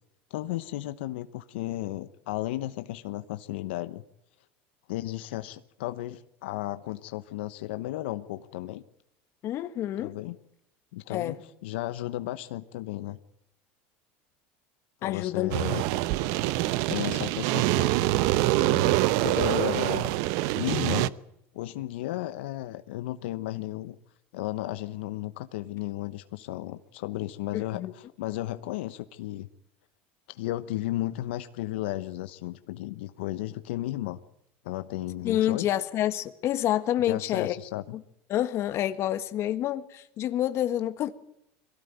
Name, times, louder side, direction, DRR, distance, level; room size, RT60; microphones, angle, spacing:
voice 1, 0.3-4.0 4.9-8.8 10.0-10.4 10.9-11.4 11.6-13.2 15.0-15.8 16.9-17.9 18.3-21.1 21.5-24.0 24.3-29.5 30.3-34.2 34.6-35.7 37.0-38.0, left 15 dB, 85° left, 1.0 m, -34 dB
voice 2, 9.4-10.2 11.1-11.4 15.0-15.5 27.5-27.9 35.2-37.5 37.9-38.0 38.3-41.2, left 12 dB, 50° left, 1.7 m, -28 dB
sound 1, 15.5-21.1, right 17 dB, 70° right, 0.9 m, -25 dB
22.5 x 17.0 x 9.3 m
supercardioid pair, 110°, 6 cm